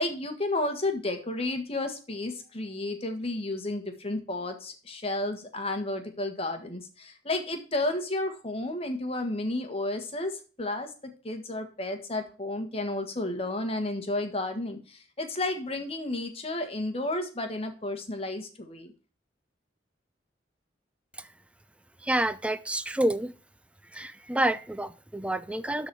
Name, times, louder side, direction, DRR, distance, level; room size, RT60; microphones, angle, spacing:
voice 1, 0.0-10.3 10.6-18.9, left 2 dB, 35° left, 6 dB, 1.5 m, -32 dB
voice 2, 22.0-23.3 23.9-25.9, right 1 dB, 5° right, 14 dB, 0.5 m, -28 dB
12.5 x 4.2 x 4.7 m, 0.37 s
head